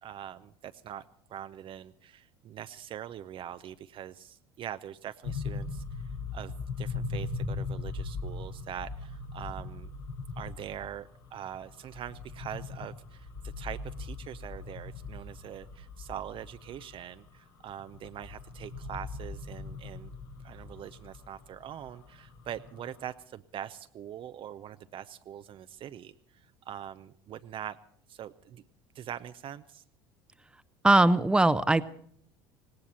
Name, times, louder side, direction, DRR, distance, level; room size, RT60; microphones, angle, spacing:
voice 1, 0.0-6.5 6.8-9.9 10.4-20.1 20.4-27.8 28.1-28.6 28.9-29.8, right 10 dB, 45° right, 12 dB, 0.6 m, -43 dB
sound 1, 5.2-23.1, left 4 dB, 85° left, 3.9 m, -40 dB
voice 2, 30.8-31.8, right 2 dB, 5° right, 13 dB, 0.7 m, -21 dB
18.0 x 17.5 x 4.3 m, 0.67 s
hypercardioid pair, 75°, 12 cm